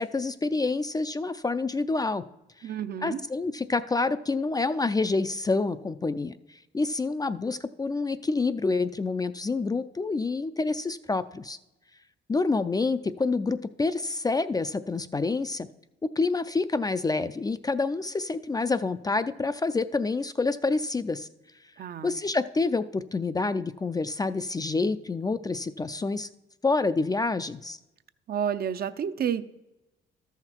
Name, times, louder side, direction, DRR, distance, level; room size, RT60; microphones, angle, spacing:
voice 1, 0.0-2.2 2.6-2.7 3.0-11.6 12.3-15.7 16.2-21.3 22.0-26.3 26.6-27.8, left 3 dB, 20° left, 12 dB, 0.3 m, -27 dB
voice 2, 2.6-3.2 21.8-22.1 28.3-29.5, right 8 dB, 50° right, 12 dB, 0.5 m, -30 dB
13.0 x 5.8 x 4.4 m, 0.97 s
cardioid pair, 90°, 20 cm